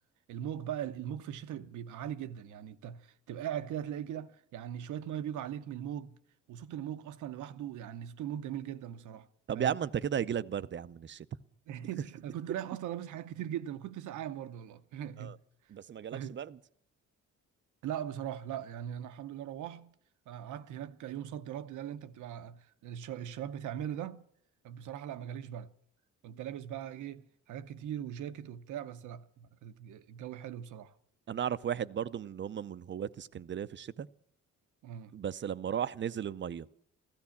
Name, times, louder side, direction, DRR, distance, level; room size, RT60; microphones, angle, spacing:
voice 1, 0.3-6.2 6.5-9.3 9.5-9.8 11.7-15.3 16.1-16.4 17.8-19.9 20.3-24.2 24.6-25.7 26.2-31.0 34.8-35.1, right 10 dB, 80° right, 0.8 m, -40 dB
voice 2, 9.5-11.3 15.2-15.3 15.7-16.6 31.3-34.1 35.1-36.7, right 8 dB, 40° right, 0.6 m, -35 dB
15.5 x 13.0 x 7.1 m
cardioid pair, 90°, 30 cm